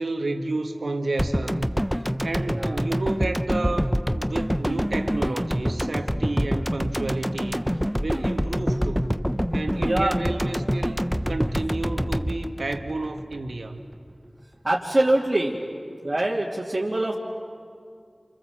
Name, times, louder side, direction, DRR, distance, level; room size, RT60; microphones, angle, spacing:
voice 1, 0.0-1.8 2.2-7.6 8.0-9.1 9.5-13.8, right 2 dB, 85° right, 4 dB, 1.7 m, -31 dB
sound 1, 1.2-13.5 13.8-13.9, equal, ahead, 0.9 m, -26 dB
voice 2, 2.5-2.8 9.8-10.2 14.6-15.6 16.0-17.1, right 1 dB, 40° right, -6 dB, 2.8 m, -24 dB
28.5 x 28.0 x 7.6 m, 2.2 s
wide cardioid pair, 40°, 0 cm